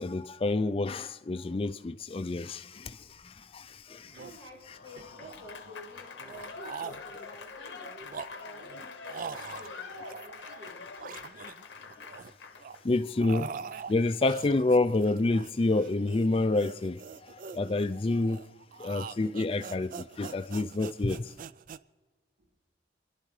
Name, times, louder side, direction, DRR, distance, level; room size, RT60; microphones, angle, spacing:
voice 1, 0.0-4.1 12.8-13.5 13.9-18.4 18.8-21.3, left 2 dB, 30° left, 0.4 m, -28 dB
voice 2, 3.1-3.5 4.1-11.2, equal, 80° right, 5.4 m, -50 dB
sound 1, 3.7-3.8 4.0-4.3 5.0-5.7 6.2-7.4 7.9-10.7 11.0-12.3 12.6-21.8, right 6 dB, 50° right, 0.3 m, -44 dB
Applause / Crowd, 4.6-12.8, left 5 dB, 80° left, 0.9 m, -45 dB
29.5 x 11.0 x 3.2 m
head